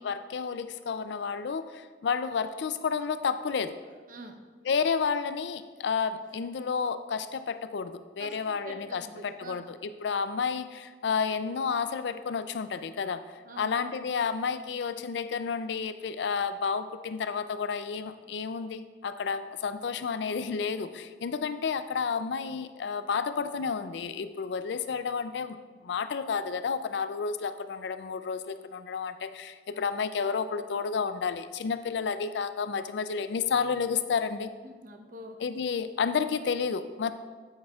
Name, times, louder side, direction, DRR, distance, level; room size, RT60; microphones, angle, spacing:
voice 1, 0.0-3.8 4.6-13.2 13.6-25.6 25.8-34.5 35.4-37.1, left 5 dB, 70° left, 11 dB, 0.4 m, -31 dB
voice 2, 4.1-4.4 8.2-9.6 13.4-13.8 29.7-29.9 34.6-35.4, right 1 dB, 50° right, 5 dB, 0.8 m, -46 dB
9.2 x 8.7 x 2.4 m, 1.4 s
head